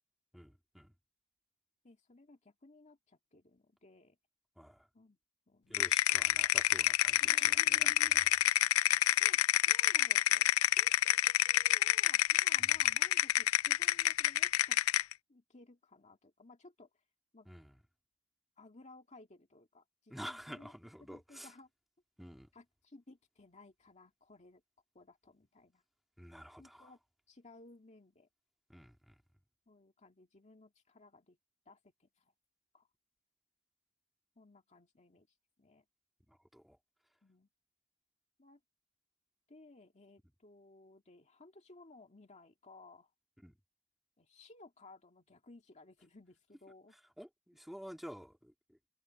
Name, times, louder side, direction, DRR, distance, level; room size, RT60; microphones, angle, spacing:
voice 1, 0.3-0.9 4.6-4.9 5.7-8.3 8.7-9.2 12.6-12.8 17.5-17.7 20.1-21.5 22.2-22.5 26.2-26.9 28.7-29.2 36.3-36.8 43.4-43.6 47.2-48.8, equal, ahead, 2.3 m, -50 dB
voice 2, 1.8-4.2 4.9-5.2 5.5-5.9 7.2-8.3 8.8-14.8 15.3-17.0 17.3-17.5 18.6-20.7 21.1-21.7 22.5-24.6 24.9-25.8 26.6-27.0 27.3-28.3 29.7-31.4 31.7-32.3 32.7-32.9 34.4-35.9 37.2-37.5 38.4-38.6 39.5-43.1 44.2-47.0, left 2 dB, 35° left, 2.0 m, -58 dB
sound 1, 5.7-15.1, left 13 dB, 75° left, 0.4 m, -28 dB
head